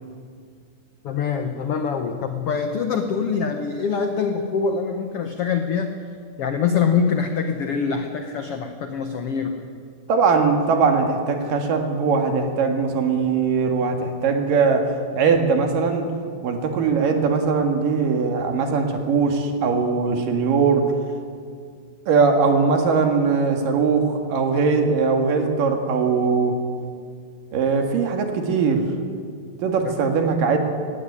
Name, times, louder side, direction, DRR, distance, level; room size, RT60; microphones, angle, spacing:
voice 1, 1.0-5.9 6.4-9.5 29.8-29.9, left 6 dB, 80° left, 6 dB, 1.3 m, -24 dB
voice 2, 10.1-14.8 15.1-16.1 16.4-20.9 22.1-26.5 27.5-28.8 29.6-30.6, right 5 dB, 65° right, 4 dB, 3.4 m, -20 dB
17.0 x 16.5 x 9.8 m, 2.1 s
omnidirectional pair, 4.3 m